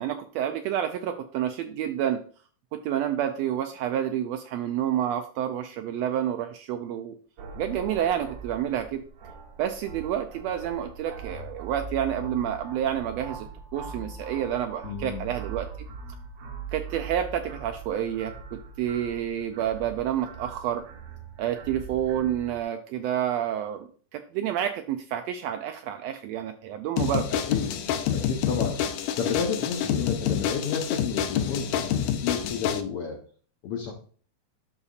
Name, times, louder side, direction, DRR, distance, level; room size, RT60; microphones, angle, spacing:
voice 1, 0.0-2.2 2.7-7.2 7.5-9.0 9.6-13.5 13.7-15.7 16.7-20.8 21.4-27.3, right 10 dB, 85° right, 7 dB, 1.5 m, -29 dB
sound 1, 7.4-22.6, right 4 dB, 65° right, 2.0 m, -41 dB
voice 2, 14.8-15.3 27.3-33.2 33.6-33.9, left 6 dB, 70° left, 0 dB, 1.5 m, -31 dB
sound 2, 27.0-32.8, left 9 dB, 85° left, 2.1 m, -27 dB
12.0 x 4.1 x 2.4 m, 0.42 s
omnidirectional pair, 3.5 m